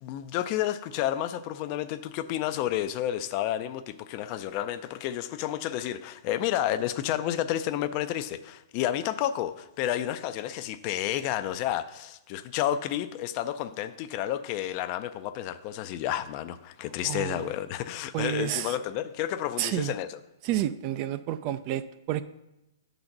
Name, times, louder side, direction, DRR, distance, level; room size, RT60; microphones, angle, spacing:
voice 1, 0.0-20.2, left 12 dB, 35° left, 0.4 m, -31 dB
voice 2, 17.0-17.5 18.1-18.7 19.6-19.9 20.4-22.2, right 12 dB, 35° right, 0.3 m, -30 dB
6.3 x 4.0 x 5.9 m
hypercardioid pair, 135°, 2 cm